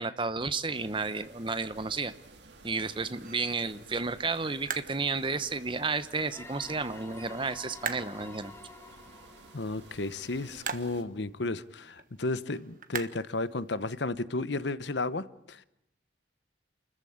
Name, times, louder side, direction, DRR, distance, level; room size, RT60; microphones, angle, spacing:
voice 1, 0.0-2.1 2.6-8.5, right 4 dB, 25° right, 1.0 m, -32 dB
sound 1, 0.7-11.0, right 3 dB, 75° right, 2.7 m, -54 dB
sound 2, 0.8-14.0, right 6 dB, 45° right, 1.4 m, -45 dB
sound 3, 6.3-10.9, left 3 dB, 15° left, 1.4 m, -50 dB
voice 2, 9.5-15.6, left 2 dB, 75° left, 1.0 m, -33 dB
28.5 x 14.5 x 8.7 m
head